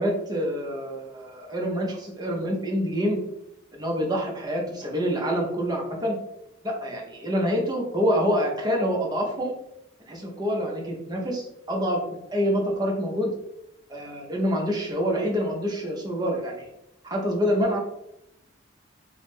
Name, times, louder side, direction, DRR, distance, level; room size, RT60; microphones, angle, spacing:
voice 1, 0.0-3.2 3.8-6.2 6.6-9.5 10.1-12.0 12.3-13.3 13.9-16.6 17.0-17.8, equal, 20° right, 0 dB, 0.5 m, -26 dB
2.9 x 2.0 x 3.4 m, 0.84 s
head